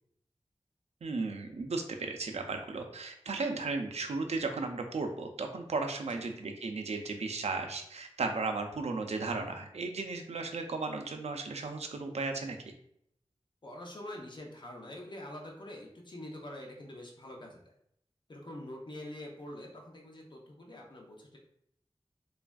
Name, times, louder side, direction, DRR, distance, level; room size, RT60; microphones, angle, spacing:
voice 1, 1.0-12.6, right 3 dB, 85° right, 4 dB, 0.4 m, -35 dB
voice 2, 13.6-17.7 18.3-21.4, left 1 dB, 45° left, 0 dB, 0.6 m, -45 dB
3.2 x 2.4 x 2.2 m, 0.72 s
wide cardioid pair, 75°, 11 cm